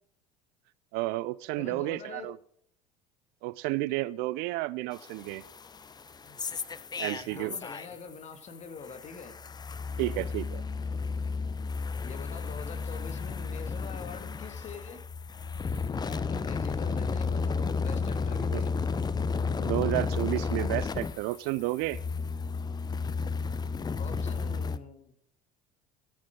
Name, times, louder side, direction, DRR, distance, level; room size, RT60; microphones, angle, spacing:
voice 1, 0.9-2.4 3.4-5.4 7.0-7.6 10.0-10.6 18.5-18.6 19.6-22.0, right 19 dB, 55° right, 20 dB, 0.5 m, -31 dB
voice 2, 1.5-2.3 6.2-6.4 7.3-9.4 12.0-15.0 16.1-18.7 24.0-25.1, left 5 dB, 35° left, 8 dB, 2.3 m, -44 dB
sound 1, 4.9-8.1 8.4-24.8, left 4 dB, 20° left, 0.8 m, -33 dB
13.5 x 8.7 x 5.1 m, 0.67 s
figure-of-eight pair, 70°, 19 cm